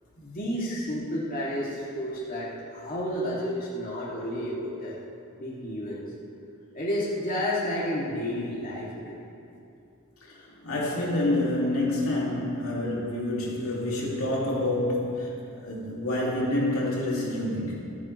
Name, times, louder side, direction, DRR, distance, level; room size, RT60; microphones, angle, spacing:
voice 1, 0.2-5.0 5.4-6.0 6.7-9.2, equal, 40° left, -6 dB, 2.7 m, -31 dB
voice 2, 10.2-18.0, left 1 dB, 80° left, -4 dB, 2.6 m, -28 dB
27.5 x 9.4 x 3.3 m, 2.6 s
head